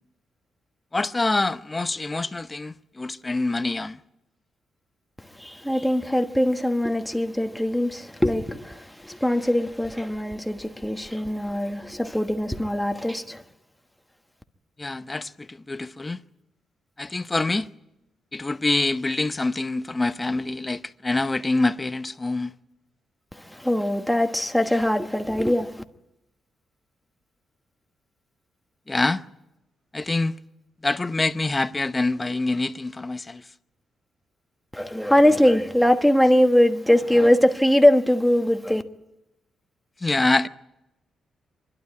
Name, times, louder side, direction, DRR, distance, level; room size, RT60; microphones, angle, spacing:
voice 1, 0.9-4.0 14.8-16.2 17.0-17.7 18.3-22.5 28.9-29.2 29.9-30.4 30.8-33.4 40.0-40.5, left 2 dB, 20° left, 0.8 m, -25 dB
voice 2, 5.2-13.4 23.3-25.8 34.7-38.8, left 1 dB, 5° left, 1.3 m, -21 dB
24.5 x 12.0 x 9.5 m
cardioid pair, 95°, 0 cm